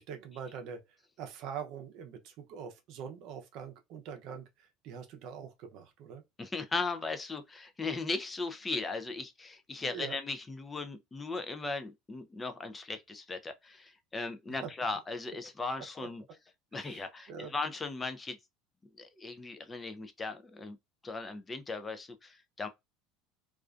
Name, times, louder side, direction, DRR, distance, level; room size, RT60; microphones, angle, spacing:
voice 1, 0.0-6.2 9.8-10.2 14.6-14.7 16.0-16.1 16.7-17.5, right 7 dB, 55° right, 0.6 m, -44 dB
voice 2, 6.4-16.2 16.7-18.4 19.0-20.8 21.0-22.7, left 3 dB, 15° left, 0.4 m, -37 dB
2.4 x 2.1 x 2.4 m
supercardioid pair, 135°, 0 cm